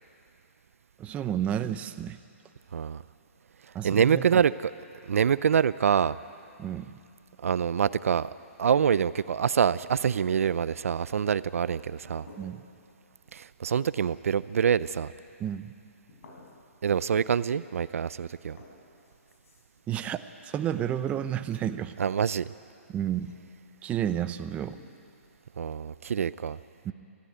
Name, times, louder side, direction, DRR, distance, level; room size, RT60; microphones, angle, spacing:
voice 1, 1.0-2.2 3.7-4.4 6.6-6.9 12.4-12.6 15.4-15.7 19.9-20.2 20.4-21.9 22.9-23.3 23.8-24.8 26.8-26.9, right 10 dB, 15° right, 11 dB, 0.6 m, -31 dB
voice 2, 2.7-3.0 3.8-4.7 5.0-6.2 7.4-8.3 8.6-12.3 13.3-15.1 16.8-18.6 22.0-22.5 25.6-26.6, right 7 dB, 75° right, 17 dB, 0.5 m, -25 dB
sound 1, 12.0-12.9 13.2-13.7 13.9-14.6 16.1-16.8 17.9-18.0 18.3-19.9 20.7-21.8 23.1-23.9 24.7-25.2, left 2 dB, 70° left, 5.2 m, -53 dB
19.5 x 14.5 x 9.3 m, 2.5 s
hypercardioid pair, 145°, 8 cm